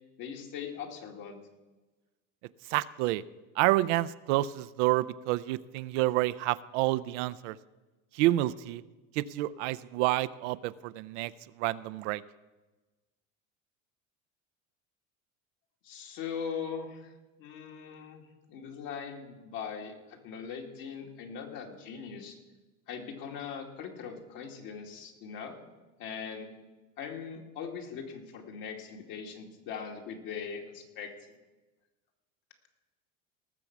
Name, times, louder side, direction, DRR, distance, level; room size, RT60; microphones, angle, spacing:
voice 1, 0.2-1.4 15.8-17.1 17.4-18.2 18.5-22.4 22.9-25.6 26.0-26.5 27.0-31.1, left 6 dB, 60° left, 2 dB, 2.5 m, -40 dB
voice 2, 2.7-3.2 3.6-7.6 8.1-8.8 9.1-11.3 11.6-12.2, right 17 dB, 75° right, 16 dB, 0.6 m, -28 dB
18.5 x 7.0 x 6.0 m, 1.2 s
supercardioid pair, 100°, 37 cm